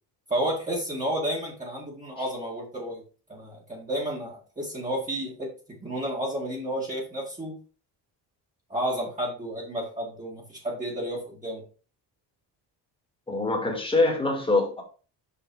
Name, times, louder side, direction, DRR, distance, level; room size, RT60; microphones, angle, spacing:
voice 1, 0.3-3.0 3.3-7.6 8.7-11.6, right 1 dB, 20° right, 2.3 m, -31 dB
voice 2, 13.3-14.8, left 2 dB, 10° left, 2.2 m, -24 dB
6.7 x 4.7 x 4.8 m
cardioid pair, 120°, 41 cm